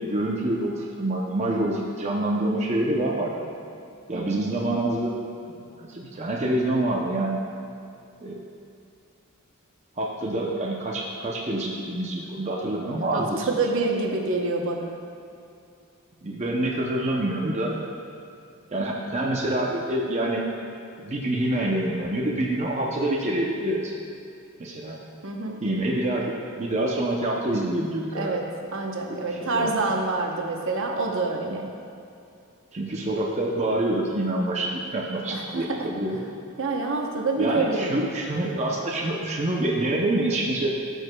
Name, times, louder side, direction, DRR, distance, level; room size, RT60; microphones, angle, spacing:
voice 1, 0.0-3.5 4.1-5.2 5.8-7.4 8.2-8.4 10.0-13.5 16.2-17.8 18.7-20.4 21.0-23.9 24.6-25.0 25.6-26.2 26.6-28.4 29.1-29.7 31.5-31.6 32.7-36.2 37.4-40.7, right 1 dB, 30° right, -2 dB, 0.6 m, -26 dB
voice 2, 4.1-4.5 13.1-14.9 25.2-25.6 28.1-28.4 28.7-31.7 35.3-35.9 36.6-38.1, right 3 dB, 60° right, 1 dB, 0.8 m, -27 dB
13.5 x 6.3 x 2.2 m, 2.5 s
head